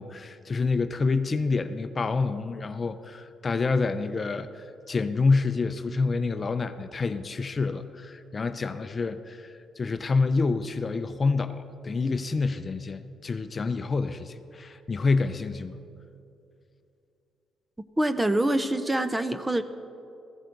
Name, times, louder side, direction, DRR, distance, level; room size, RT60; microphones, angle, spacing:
voice 1, 0.0-15.8, left 4 dB, 35° left, 10 dB, 0.6 m, -27 dB
voice 2, 18.0-19.6, right 1 dB, 10° right, 11 dB, 0.6 m, -25 dB
15.5 x 14.5 x 3.9 m, 2.7 s
cardioid pair, 90°, 0 cm